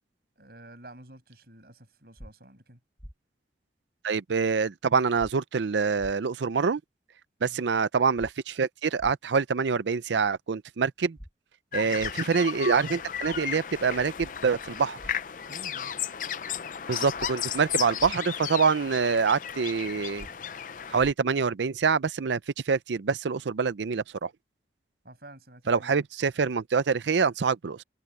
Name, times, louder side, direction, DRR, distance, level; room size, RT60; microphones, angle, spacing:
voice 1, 0.4-2.8 7.4-7.6 15.5-15.9 25.0-26.0, right 1 dB, 60° right, 7.1 m, -50 dB
sound 1, 2.2-2.3 3.0-3.1 5.2-5.3 6.0-6.1 8.2-8.3 9.0-9.1 11.2-11.3 12.0-12.1 14.2-14.3 15.0-15.1 17.2-17.3 18.0-18.1 20.2-20.3 21.0-21.1, equal, ahead, 1.8 m, -44 dB
voice 2, 4.0-6.8 7.4-11.2 11.7-15.0 16.9-20.3 20.9-22.4 22.7-24.3 25.7-27.8, right 5 dB, 85° right, 0.5 m, -26 dB
sound 2, 11.7-21.1, left 8 dB, 45° left, 0.5 m, -35 dB
head